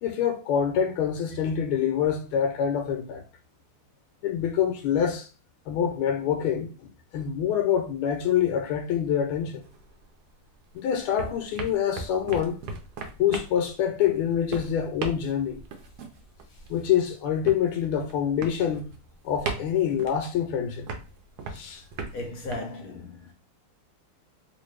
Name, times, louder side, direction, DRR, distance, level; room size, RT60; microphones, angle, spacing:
voice 1, 0.0-3.2 4.2-5.3 5.7-6.7 7.1-9.6 10.7-12.6 13.2-15.6 16.7-18.9 19.2-20.9 21.5-21.8, left 9 dB, 80° left, 1.4 m, -26 dB
sound 1, 9.6-10.7 11.0-22.5, right 4 dB, 75° right, 0.9 m, -38 dB
voice 2, 22.1-23.3, left 2 dB, 60° left, 1.0 m, -36 dB
3.0 x 2.9 x 3.1 m
omnidirectional pair, 2.4 m